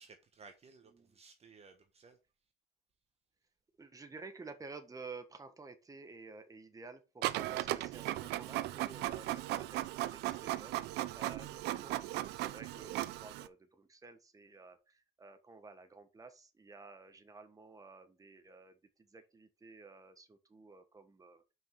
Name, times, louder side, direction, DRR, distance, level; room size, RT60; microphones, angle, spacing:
voice 1, 0.0-2.2, right 4 dB, 40° right, 1.1 m, -58 dB
voice 2, 3.8-21.4, right 4 dB, 20° right, 1.4 m, -52 dB
Printer, 7.2-13.5, right 15 dB, 85° right, 0.6 m, -37 dB
5.6 x 5.5 x 6.0 m
cardioid pair, 110°, 17 cm